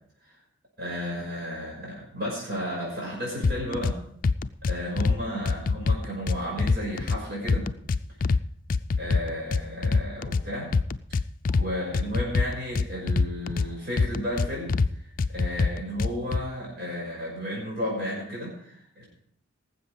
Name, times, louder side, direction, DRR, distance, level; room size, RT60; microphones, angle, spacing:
voice 1, 0.8-4.0 4.7-7.7 9.0-10.7 11.5-14.7 15.3-19.1, equal, 55° right, -4 dB, 5.7 m, -33 dB
sound 1, 3.4-3.9 4.2-5.2 5.5-7.2 7.5-8.4 8.7-10.4 10.7-11.7 11.9-13.7 14.0-14.9 15.2-16.4, left 4 dB, 45° left, 0.4 m, -24 dB
18.5 x 7.7 x 5.0 m, 0.65 s
head